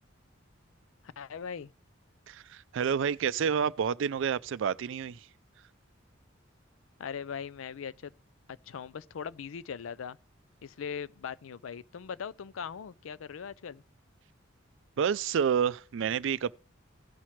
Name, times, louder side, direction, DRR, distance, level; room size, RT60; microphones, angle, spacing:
voice 1, 1.2-1.7 7.0-8.1 8.5-10.2 10.6-13.8, left 7 dB, 85° left, 0.4 m, -40 dB
voice 2, 2.3-5.3 15.0-16.5, right 7 dB, 65° right, 0.4 m, -29 dB
16.5 x 5.8 x 3.1 m
head